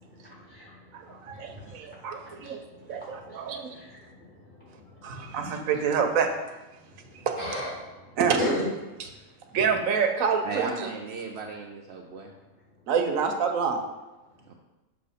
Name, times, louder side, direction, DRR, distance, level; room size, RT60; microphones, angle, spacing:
voice 1, 0.0-5.4 6.9-8.7, equal, 40° left, -9 dB, 2.6 m, -38 dB
voice 2, 0.9-2.6 2.9-3.7 5.0-6.3 7.3-7.4 8.2-8.4 9.5-10.9 12.9-13.8, right 6 dB, 85° right, 5 dB, 1.1 m, -27 dB
voice 3, 10.4-12.3 14.5-14.6, right 4 dB, 65° right, 1 dB, 0.7 m, -36 dB
6.6 x 3.1 x 5.6 m, 1.1 s
omnidirectional pair, 1.4 m